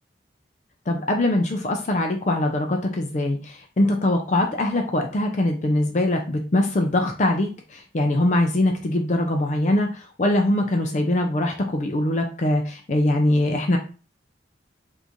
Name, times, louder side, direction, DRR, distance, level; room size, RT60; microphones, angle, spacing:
voice 1, 0.9-13.8, left 1 dB, 40° left, 3 dB, 0.4 m, -22 dB
3.0 x 2.6 x 3.6 m, 0.35 s
head